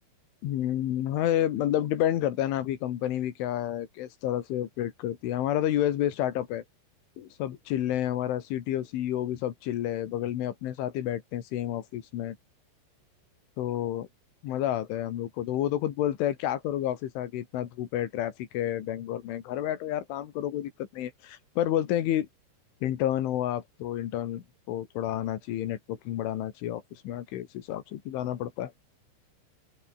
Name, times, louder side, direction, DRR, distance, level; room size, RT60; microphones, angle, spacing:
voice 1, 0.4-6.6 7.2-12.4 13.6-14.1 14.4-22.3 22.8-28.7, left 12 dB, 90° left, 4.5 m, -30 dB
open air
omnidirectional pair, 5.4 m